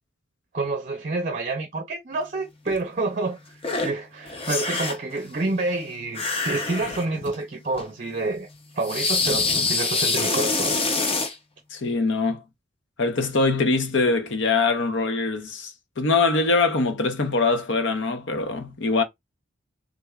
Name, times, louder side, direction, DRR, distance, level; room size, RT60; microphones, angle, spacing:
voice 1, 0.5-8.5 8.8-10.8, right 2 dB, 40° right, 0.6 m, -28 dB
sound 1, 2.7-2.8 3.6-3.9 4.2-5.1 6.1-7.4 7.7-7.9 8.8-11.3, left 3 dB, 30° left, 0.7 m, -25 dB
voice 2, 11.7-12.4 13.0-15.7 16.0-19.0, left 3 dB, 65° left, 0.8 m, -23 dB
3.5 x 3.3 x 2.3 m
head